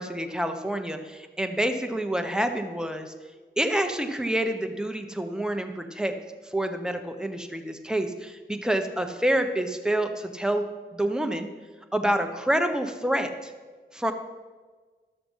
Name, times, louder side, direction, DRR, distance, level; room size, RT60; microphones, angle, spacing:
voice 1, 0.0-3.1 3.6-6.1 6.4-10.6 10.9-11.5 11.9-13.5 13.9-14.1, right 1 dB, 5° right, 5 dB, 1.1 m, -27 dB
12.5 x 6.7 x 5.6 m, 1.4 s
cardioid pair, 65°, 19 cm